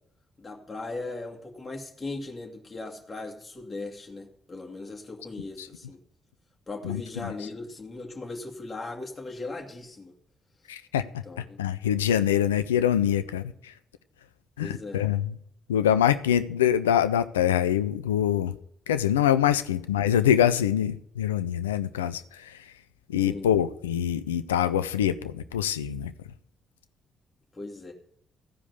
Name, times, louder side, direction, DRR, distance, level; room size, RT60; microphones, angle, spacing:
voice 1, 0.4-6.0 6.7-10.1 11.3-11.6 14.6-15.0 23.2-23.5 27.5-27.9, left 2 dB, 30° left, 2.2 m, -38 dB
voice 2, 6.8-7.5 10.7-13.7 14.6-15.4 15.7-18.5 18.9-22.8 23.1-26.1, left 10 dB, 90° left, 0.4 m, -25 dB
15.0 x 5.1 x 8.0 m
hypercardioid pair, 40°, 0 cm